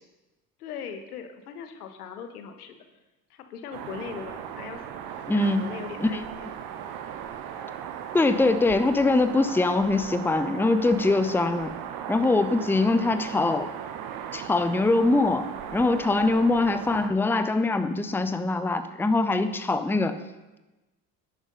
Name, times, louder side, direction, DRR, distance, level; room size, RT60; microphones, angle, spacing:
voice 1, 0.6-2.8 3.3-6.6 16.6-16.7, left 7 dB, 75° left, 7 dB, 1.3 m, -40 dB
sound 1, 3.7-17.1, right 9 dB, 55° right, 1.2 m, -37 dB
voice 2, 5.3-5.6 6.0-6.1 8.1-11.7 12.1-13.7 14.3-20.2, left 2 dB, 5° left, 11 dB, 0.8 m, -23 dB
11.0 x 9.4 x 5.4 m, 1.1 s
figure-of-eight pair, 55°, 45 cm